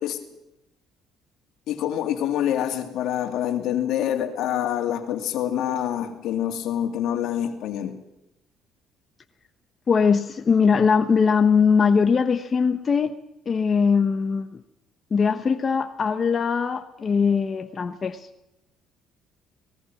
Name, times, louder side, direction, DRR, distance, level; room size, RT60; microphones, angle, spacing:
voice 1, 1.7-8.0, left 10 dB, 75° left, 6 dB, 2.4 m, -26 dB
voice 2, 9.9-13.1 13.5-14.6 15.1-18.3, left 5 dB, 35° left, 7 dB, 1.0 m, -21 dB
25.5 x 19.0 x 6.1 m, 0.89 s
cardioid pair, 105°, 0 cm